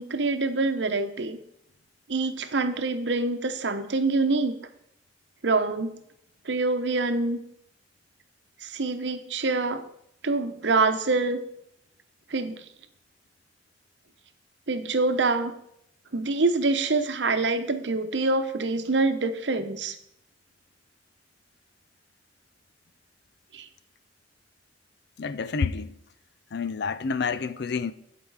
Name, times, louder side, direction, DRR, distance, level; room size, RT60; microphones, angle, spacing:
voice 1, 0.0-1.4 2.1-4.5 5.4-5.9 6.4-7.4 8.6-9.8 10.2-11.4 12.3-12.6 14.7-15.5 16.1-20.0 23.5-23.7, right 3 dB, 70° right, 0.9 m, -25 dB
voice 2, 25.2-25.9 26.5-27.9, left 5 dB, 65° left, 0.5 m, -28 dB
15.0 x 5.1 x 4.8 m
head